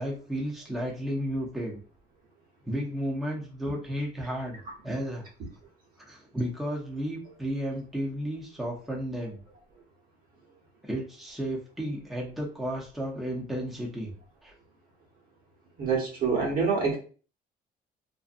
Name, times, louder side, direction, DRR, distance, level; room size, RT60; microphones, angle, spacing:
voice 1, 0.0-1.8 2.6-4.6 4.8-5.2 6.0-9.4 10.8-14.1 14.4-14.5, equal, ahead, -3 dB, 0.6 m, -33 dB
voice 2, 15.8-17.0, right 5 dB, 60° right, -2 dB, 1.0 m, -26 dB
2.6 x 2.2 x 2.5 m, 0.39 s
cardioid pair, 110°, 17 cm